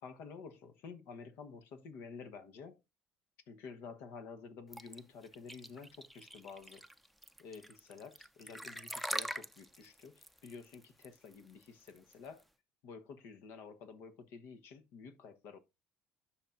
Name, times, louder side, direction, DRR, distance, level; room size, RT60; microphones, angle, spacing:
voice 1, 0.0-2.8 3.5-6.8 7.4-12.4 12.8-15.6, left 5 dB, 70° left, 1.1 m, -50 dB
sound 1, 4.7-12.4, equal, ahead, 0.6 m, -43 dB
10.0 x 5.9 x 2.5 m
supercardioid pair, 95°, 4 cm